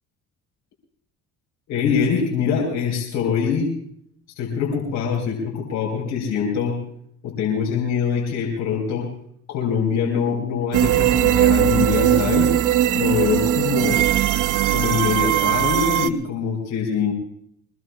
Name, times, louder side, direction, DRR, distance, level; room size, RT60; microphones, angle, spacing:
voice 1, 1.7-3.7 4.4-6.8 7.2-9.1 9.5-12.5 12.9-14.0 14.3-17.1, left 6 dB, 75° left, -2 dB, 4.3 m, -24 dB
sound 1, 10.7-16.1, right 12 dB, 70° right, 0.9 m, -19 dB
24.0 x 20.0 x 2.3 m, 0.66 s
supercardioid pair, 65°, 31 cm